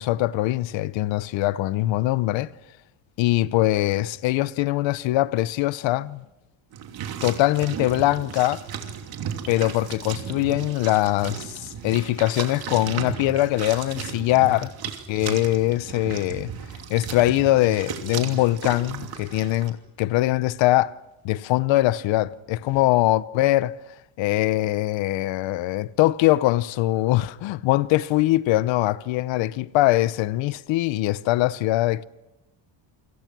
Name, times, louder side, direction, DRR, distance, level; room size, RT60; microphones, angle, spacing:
voice 1, 0.0-2.5 3.2-6.2 7.2-8.6 9.5-14.7 15.1-16.5 16.9-20.9 21.2-23.7 24.2-32.1, left 16 dB, 70° left, 0.9 m, -22 dB
sound 1, 6.7-19.7, right 8 dB, 50° right, 2.9 m, -35 dB
28.0 x 25.5 x 6.1 m
cardioid pair, 175°, 47 cm